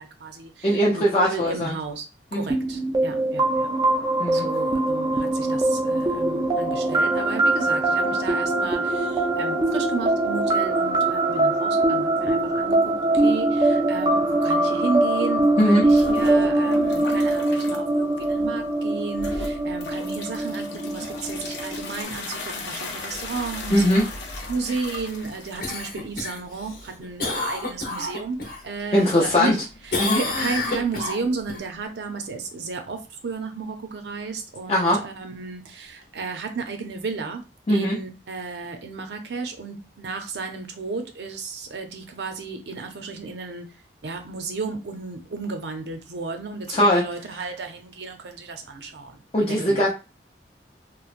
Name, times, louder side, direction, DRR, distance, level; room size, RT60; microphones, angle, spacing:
voice 1, 0.0-2.1 2.3-3.7 4.3-23.8 24.5-28.4 28.6-29.6 29.9-37.4 37.7-43.6 44.0-49.9, right 4 dB, 80° right, 6 dB, 0.5 m, -33 dB
voice 2, 0.6-1.8 2.3-2.4 4.2-4.5 15.6-15.9 23.7-24.0 28.9-29.6 30.0-30.2 34.7-35.0 37.7-38.0 46.7-47.0 49.3-49.9, equal, 35° left, -4 dB, 0.5 m, -20 dB
sound 1, 2.5-22.0, right 2 dB, 20° right, 0.3 m, -23 dB
sound 2, 15.8-17.8 18.2-18.7 19.1-31.8, left 2 dB, 85° left, 0.6 m, -37 dB
Cough, 25.6-28.6 29.0-29.6 29.9-31.6 36.0-36.1, left 2 dB, 55° left, 0.8 m, -29 dB
2.9 x 2.1 x 2.5 m, 0.30 s
head